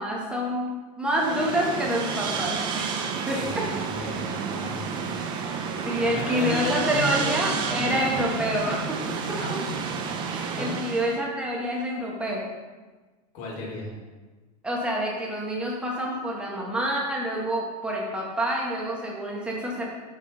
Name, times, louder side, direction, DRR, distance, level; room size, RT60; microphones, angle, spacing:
voice 1, 0.0-2.9 3.3-3.7 5.2-9.0 9.3-9.4 10.2-12.4 14.6-19.8, equal, 5° right, -3 dB, 0.9 m, -28 dB
sound 1, 1.1-11.2, right 5 dB, 25° right, 0.4 m, -30 dB
voice 2, 3.3-5.1 5.4-7.3 9.3-9.6 10.5-10.8 13.3-14.0, left 2 dB, 40° left, -1 dB, 1.4 m, -34 dB
5.3 x 4.9 x 3.7 m, 1.3 s
supercardioid pair, 160°, 20 cm